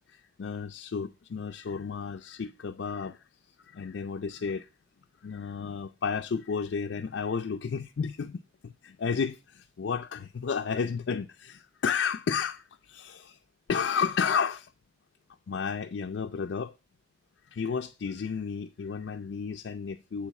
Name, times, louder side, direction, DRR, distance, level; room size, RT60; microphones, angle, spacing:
voice 1, 0.1-3.2 3.6-4.7 5.2-13.4 13.7-14.7 15.5-16.7 17.5-20.3, left 6 dB, 70° left, 0.4 m, -32 dB
7.7 x 4.2 x 4.6 m
head